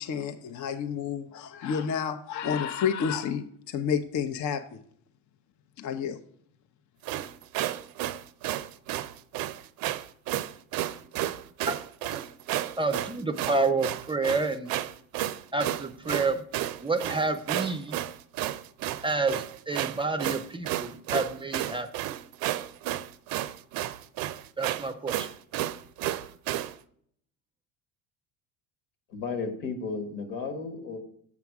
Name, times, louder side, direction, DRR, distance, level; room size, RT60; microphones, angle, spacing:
voice 1, 0.0-4.8 5.8-6.2, left 7 dB, 50° left, 8 dB, 0.7 m, -30 dB
sound 1, 7.0-26.7, right 13 dB, 65° right, 0.5 m, -32 dB
voice 2, 12.8-14.7 15.5-16.4 16.8-18.0 19.0-21.9 24.6-25.3, right 3 dB, 15° right, 9 dB, 0.4 m, -29 dB
voice 3, 29.1-31.0, left 4 dB, 85° left, 5 dB, 1.6 m, -33 dB
7.1 x 5.8 x 4.7 m, 0.64 s
supercardioid pair, 95°, 39 cm